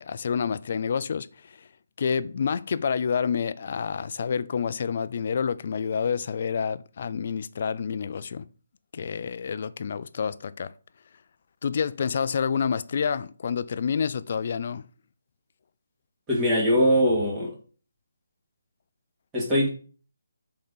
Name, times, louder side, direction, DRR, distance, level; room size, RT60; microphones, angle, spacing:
voice 1, 0.0-1.7 2.0-8.5 8.9-10.7 11.6-14.8, left 6 dB, 45° left, 0.4 m, -28 dB
voice 2, 16.3-17.5 19.3-19.7, equal, 10° right, 1.8 m, -21 dB
5.4 x 3.8 x 5.5 m
hypercardioid pair, 165°, 0 cm